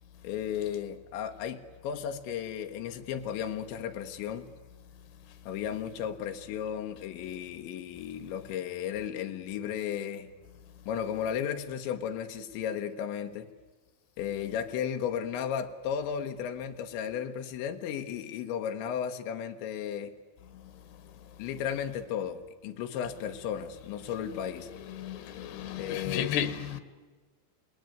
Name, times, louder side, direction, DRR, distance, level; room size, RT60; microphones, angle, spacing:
voice 1, 0.2-4.5 5.5-10.3 10.9-13.5 14.2-20.1 21.4-24.7 25.8-26.5, left 8 dB, 90° left, 3.5 m, -34 dB
voice 2, 24.9-26.8, left 9 dB, 75° left, 3.0 m, -33 dB
27.0 x 20.0 x 9.2 m
omnidirectional pair, 5.0 m